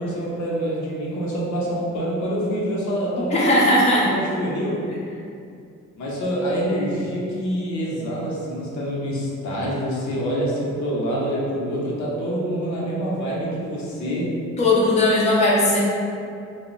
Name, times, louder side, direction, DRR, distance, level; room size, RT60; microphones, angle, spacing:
voice 1, 0.0-4.9 5.9-14.4, equal, 70° left, -5 dB, 0.7 m, -26 dB
voice 2, 3.3-4.0 14.6-15.8, left 1 dB, 20° left, -6 dB, 0.6 m, -18 dB
2.1 x 2.0 x 3.7 m, 2.4 s
cardioid pair, 90°, 30 cm